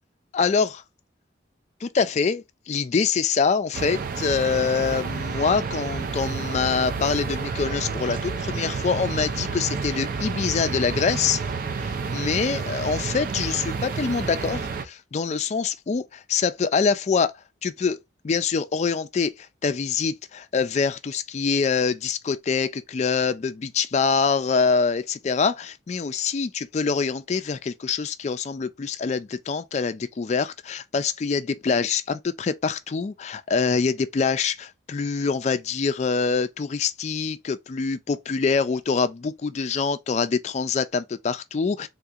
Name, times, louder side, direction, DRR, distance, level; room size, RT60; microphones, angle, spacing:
voice 1, 0.3-0.8 1.8-11.4 11.8-17.3 17.6-18.0 18.2-41.9, left 5 dB, 35° left, 0.3 m, -25 dB
sound 1, 3.7-14.8, right 4 dB, 45° right, 0.4 m, -30 dB
3.5 x 2.8 x 2.4 m
head